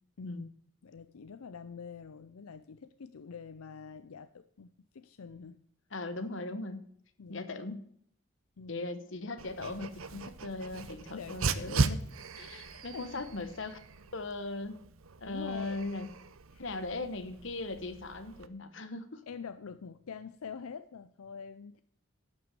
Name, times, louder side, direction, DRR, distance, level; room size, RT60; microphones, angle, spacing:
voice 1, 0.2-0.5 0.8-5.6 7.2-7.4 8.6-8.9 11.1-11.9 12.7-13.3 15.2-15.8 16.5-16.6 19.3-21.8, left 6 dB, 85° left, 11 dB, 0.5 m, -46 dB
voice 2, 5.9-6.8 7.3-7.9 8.7-12.0 12.4-13.8 14.1-14.8 15.2-16.1 16.6-19.2, left 2 dB, 60° left, 10 dB, 1.2 m, -39 dB
Dog, 9.4-18.5, right 4 dB, 75° right, 0.7 m, -38 dB
11.5 x 6.1 x 7.6 m, 0.66 s
head